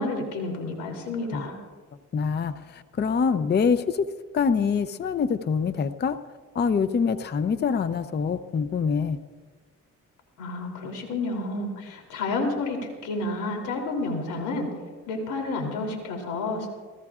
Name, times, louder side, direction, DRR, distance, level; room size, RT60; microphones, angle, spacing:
voice 1, 0.0-1.5 10.4-14.7 15.1-16.7, left 2 dB, 90° left, 2 dB, 3.2 m, -30 dB
voice 2, 2.1-4.1 4.3-6.2 6.5-9.2, left 6 dB, 35° left, 11 dB, 0.6 m, -25 dB
28.5 x 14.5 x 2.4 m, 1.4 s
cardioid pair, 90°, 30 cm